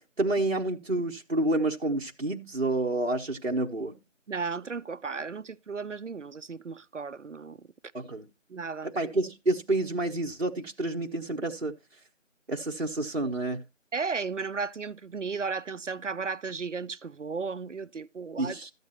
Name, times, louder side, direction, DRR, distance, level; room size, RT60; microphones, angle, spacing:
voice 1, 0.2-4.0 7.9-8.3 8.8-11.7 12.5-13.6 18.4-18.7, right 2 dB, 55° right, 1.0 m, -29 dB
voice 2, 4.3-7.6 8.5-8.9 13.9-18.6, right 5 dB, 70° right, 0.6 m, -34 dB
13.0 x 9.3 x 2.8 m
figure-of-eight pair, 180°, 38 cm